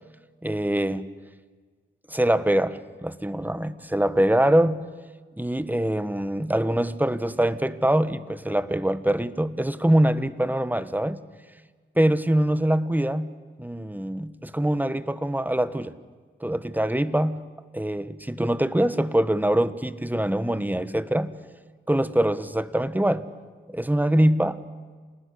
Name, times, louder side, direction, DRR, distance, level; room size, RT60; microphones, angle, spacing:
voice 1, 0.4-1.1 2.1-4.9 5.4-11.2 12.0-13.3 13.6-15.9 16.4-17.5 17.7-21.4 21.9-23.3 23.7-24.6, right 1 dB, 10° right, 14 dB, 1.4 m, -24 dB
28.0 x 19.5 x 9.9 m, 1.5 s
cardioid pair, 60°, 20 cm